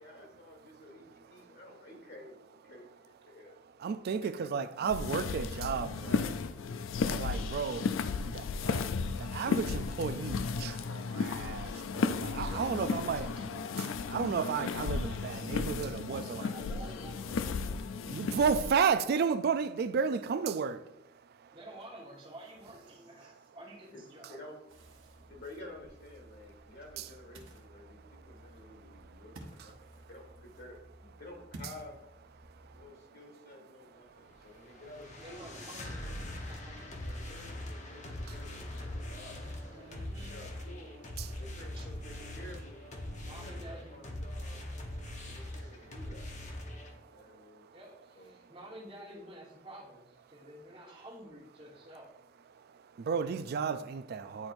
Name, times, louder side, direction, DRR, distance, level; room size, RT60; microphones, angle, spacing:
voice 1, 0.0-3.6 4.2-4.3 23.9-24.0 24.3-24.6 25.3-32.0 32.7-36.3 37.0-41.0 41.4-42.9 43.2-44.6 45.2-46.3 47.1-47.7 48.2-48.3, left 1 dB, 60° left, 1.8 m, -52 dB
voice 2, 3.8-13.3 14.1-16.5 17.9-21.6 25.0-25.3 27.0-27.1 27.8-28.1 28.6-29.2 29.6-30.0 32.4-32.9 34.0-34.8 36.8-36.9 38.3-38.4 39.0-39.1 41.2-41.3 43.0-43.2 45.0-45.9 46.7-47.8 48.3-48.5 52.5-54.5, right 6 dB, 55° right, 0.3 m, -34 dB
sound 1, 4.8-18.7, left 5 dB, 90° left, 0.4 m, -34 dB
voice 3, 12.2-14.0 16.0-17.8 21.5-24.4 35.2-36.1 36.5-37.1 39.7-40.4 41.7-41.9 43.2-44.1 47.7-52.1, right 1 dB, 25° right, 1.3 m, -50 dB
Ocean, 24.7-32.9, right 1 dB, 85° right, 1.0 m, -53 dB
sound 2, 34.2-46.9, left 1 dB, 40° left, 0.9 m, -42 dB
9.6 x 4.4 x 2.5 m
head